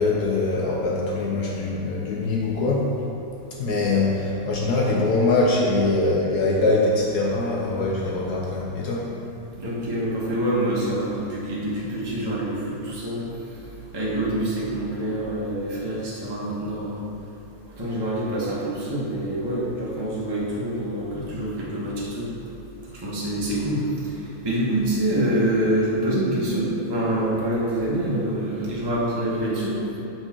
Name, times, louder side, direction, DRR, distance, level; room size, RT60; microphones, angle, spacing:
voice 1, 0.0-2.9 3.6-9.1, left 2 dB, 65° left, -3 dB, 1.0 m, -23 dB
voice 2, 9.6-13.3 13.9-17.0 17.8-22.3 22.9-29.8, right 1 dB, 20° right, -6 dB, 0.8 m, -26 dB
6.3 x 4.6 x 4.3 m, 3.0 s
omnidirectional pair, 2.3 m